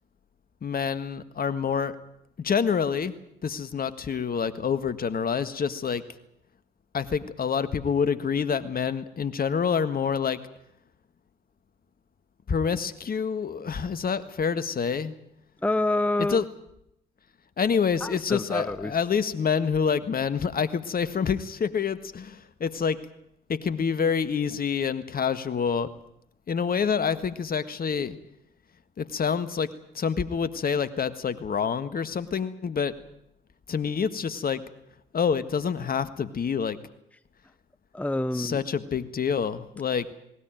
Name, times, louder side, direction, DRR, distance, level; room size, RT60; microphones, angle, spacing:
voice 1, 0.6-2.0 2.4-3.1 3.4-6.0 6.9-10.4 12.5-15.1 16.2-16.4 17.6-23.1 23.5-25.9 26.5-28.2 29.0-29.7 30.0-32.9 33.7-34.6 35.1-36.8 38.3-40.1, left 6 dB, 45° left, 12 dB, 1.7 m, -27 dB
voice 2, 15.6-16.4 18.0-19.0 37.9-38.6, left 2 dB, 5° left, 14 dB, 0.9 m, -27 dB
19.0 x 19.0 x 9.2 m, 0.81 s
hypercardioid pair, 50°, 21 cm